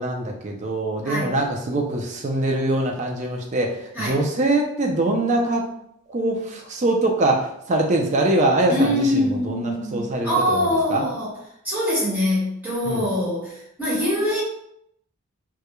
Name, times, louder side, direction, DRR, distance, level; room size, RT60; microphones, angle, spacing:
voice 1, 0.0-5.7 6.1-11.0 12.9-13.0, right 2 dB, 35° right, 2 dB, 0.3 m, -23 dB
voice 2, 8.7-11.3 11.6-14.4, left 1 dB, 10° right, -10 dB, 1.1 m, -23 dB
2.3 x 2.1 x 2.9 m, 0.76 s
head